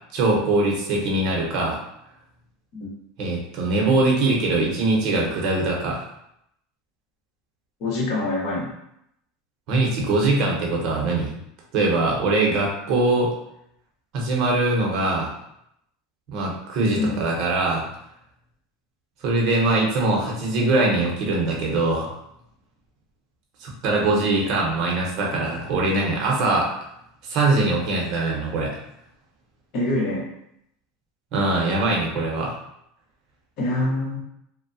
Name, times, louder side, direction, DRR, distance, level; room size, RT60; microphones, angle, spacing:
voice 1, 0.1-1.8 3.2-6.1 9.7-11.4 11.7-13.3 14.1-15.3 16.3-17.8 19.2-22.1 23.6-26.7 27.3-28.8 31.3-32.5, right 2 dB, 50° right, -2 dB, 0.8 m, -22 dB
voice 2, 7.8-8.7 16.9-17.2 29.7-30.3 33.6-34.2, left 2 dB, 50° left, -3 dB, 0.9 m, -25 dB
2.7 x 2.1 x 2.6 m, 0.77 s
supercardioid pair, 145°, 0 cm